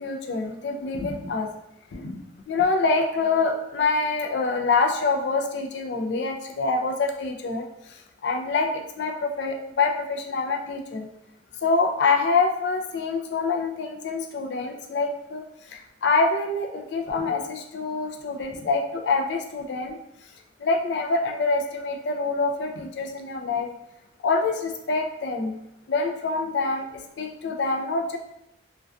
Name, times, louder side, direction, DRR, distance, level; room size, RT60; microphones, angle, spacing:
voice 1, 0.0-1.5 1.9-2.2 2.5-7.7 8.2-11.1 11.6-15.4 15.7-20.0 20.6-23.7 24.2-25.5 25.9-28.2, left 3 dB, 70° left, 4 dB, 0.4 m, -25 dB
2.4 x 2.2 x 2.2 m, 0.84 s
head